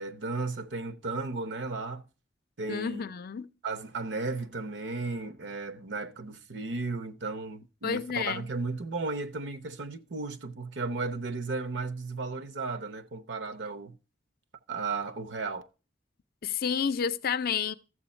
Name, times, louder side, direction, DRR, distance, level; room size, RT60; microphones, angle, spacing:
voice 1, 0.0-2.0 2.6-3.0 3.6-14.0 14.7-15.6, right 3 dB, 70° right, 0.8 m, -34 dB
voice 2, 2.7-3.5 7.8-8.5 16.4-17.7, left 6 dB, 55° left, 0.5 m, -30 dB
12.5 x 7.8 x 4.3 m
head